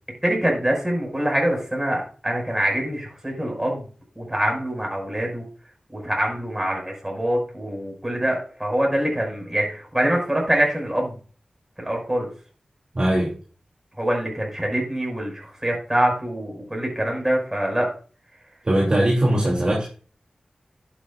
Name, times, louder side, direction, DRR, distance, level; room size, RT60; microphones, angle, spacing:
voice 1, 0.2-3.9 4.2-5.4 5.9-11.2 11.8-12.3 14.0-17.9, right 1 dB, 15° right, 0 dB, 6.0 m, -24 dB
voice 2, 12.9-13.4 18.6-19.9, right 1 dB, 35° right, -4 dB, 2.9 m, -20 dB
11.5 x 9.3 x 2.5 m, 0.39 s
wide cardioid pair, 75°, 2 cm